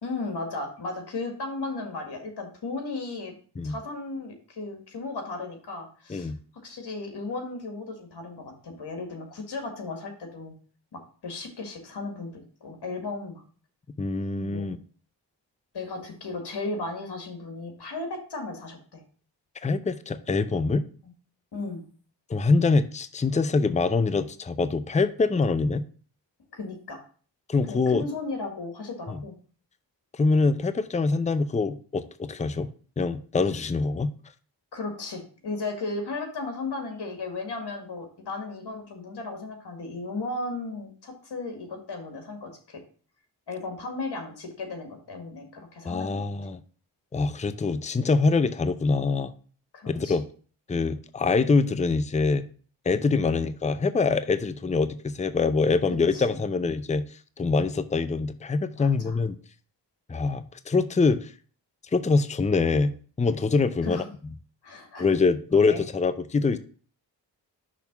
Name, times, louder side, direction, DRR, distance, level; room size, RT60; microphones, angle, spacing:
voice 1, 0.0-3.3 3.6-6.3 6.6-10.6 10.9-13.4 14.4-14.8 15.7-19.0 21.0-21.1 21.5-21.8 26.5-27.0 27.7-29.3 34.7-42.8 43.5-46.3 49.7-50.2 53.2-53.4 56.1-56.7 58.8-59.2 63.8-64.0 64.6-65.1 65.7-65.8, left 3 dB, 65° left, 2.0 m, -35 dB
voice 2, 14.0-14.8 19.6-20.9 22.3-25.8 27.5-28.1 29.1-29.2 30.1-32.7 33.0-34.1 45.8-46.6 47.1-49.3 49.9-50.2 50.7-52.5 52.9-57.0 57.4-59.4 60.1-61.3 61.9-64.0 65.0-66.6, left 4 dB, 15° left, 0.6 m, -24 dB
5.9 x 3.6 x 5.9 m
cardioid pair, 45°, 44 cm